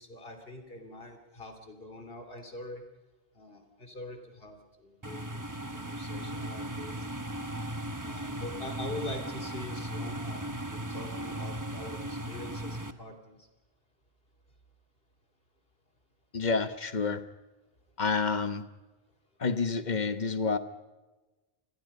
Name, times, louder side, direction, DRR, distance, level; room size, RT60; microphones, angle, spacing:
voice 1, 0.0-2.8 3.3-7.1 8.0-13.5, left 1 dB, 65° left, 5 dB, 3.1 m, -44 dB
sound 1, 5.0-12.9, right 1 dB, 20° right, 1.0 m, -37 dB
voice 2, 16.3-17.2 18.0-18.6 19.4-20.6, left 4 dB, 45° left, 10 dB, 1.3 m, -29 dB
28.5 x 21.0 x 5.4 m, 1.2 s
omnidirectional pair, 1.0 m